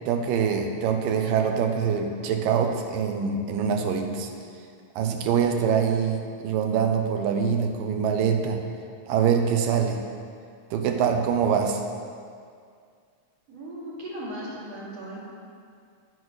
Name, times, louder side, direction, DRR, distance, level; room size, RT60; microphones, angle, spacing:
voice 1, 0.1-4.3 5.0-8.6 9.1-10.1 10.7-11.8, right 7 dB, 80° right, 4 dB, 2.4 m, -24 dB
voice 2, 13.5-15.2, right 1 dB, 50° right, -7 dB, 3.1 m, -37 dB
9.1 x 6.4 x 6.3 m, 2.2 s
omnidirectional pair, 4.1 m